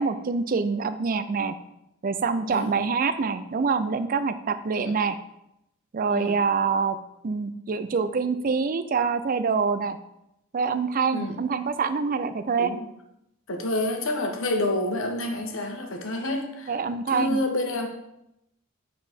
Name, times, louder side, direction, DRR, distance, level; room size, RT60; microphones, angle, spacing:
voice 1, 0.0-1.6 2.0-5.2 5.9-7.0 7.2-10.0 10.5-12.7 16.7-17.4, right 5 dB, 40° right, 12 dB, 0.4 m, -25 dB
voice 2, 13.5-16.8 17.1-17.9, left 1 dB, 65° left, 3 dB, 1.1 m, -28 dB
8.4 x 4.1 x 4.4 m, 0.84 s
head